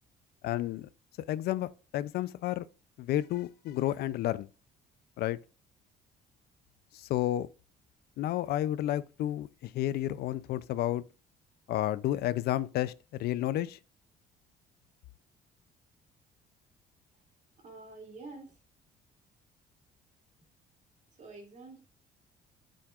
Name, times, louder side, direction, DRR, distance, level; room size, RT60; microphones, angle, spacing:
voice 1, 0.4-0.9 1.3-2.7 3.0-4.5 5.2-5.4 6.9-7.5 8.2-11.0 11.7-12.9 13.2-13.8, left 13 dB, 70° left, 0.5 m, -31 dB
voice 2, 17.6-18.5 21.2-21.8, right 3 dB, 45° right, 2.5 m, -47 dB
8.6 x 7.6 x 2.4 m
cardioid pair, 110°, 17 cm